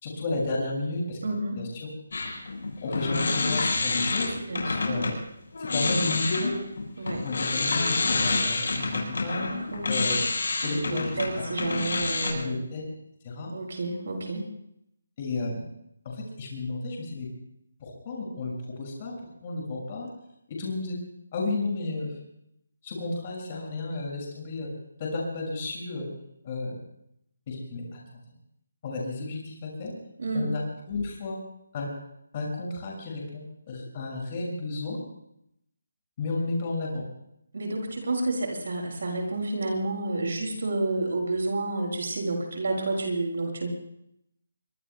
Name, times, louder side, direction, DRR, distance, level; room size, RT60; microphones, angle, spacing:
voice 1, 0.0-1.2 1.6-1.9 2.8-4.4 4.8-5.1 5.6-6.5 7.2-9.5 9.9-10.2 10.6-11.2 12.3-12.8 13.2-13.5 15.2-15.6 16.0-17.3 17.8-19.1 19.4-20.1 20.6-21.0 21.3-22.1 22.8-24.7 25.0-26.1 26.4-26.8 27.5-28.2 28.8-29.9 30.3-31.4 31.7-31.9 32.3-35.0 36.2-37.0, left 2 dB, 25° left, -1 dB, 6.3 m, -32 dB
voice 2, 1.2-1.6 4.4-4.9 7.0-7.3 9.7-10.2 10.7-12.6 13.5-14.5 30.2-30.4 37.5-43.7, right 2 dB, 55° right, 2 dB, 7.9 m, -30 dB
sound 1, 2.1-5.2 5.5-12.3, left 3 dB, 60° left, 7.7 m, -28 dB
25.5 x 24.5 x 2.3 m, 0.76 s
hypercardioid pair, 175°, 0 cm